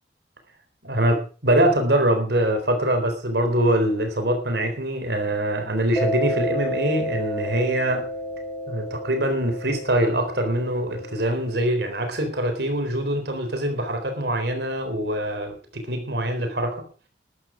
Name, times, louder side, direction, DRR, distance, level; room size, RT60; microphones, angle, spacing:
voice 1, 0.8-8.1 8.7-16.8, right 1 dB, 60° right, 3.9 m, -23 dB
Mallet percussion, 5.9-12.3, equal, 15° left, 4.1 m, -31 dB
14.0 x 12.5 x 5.0 m
head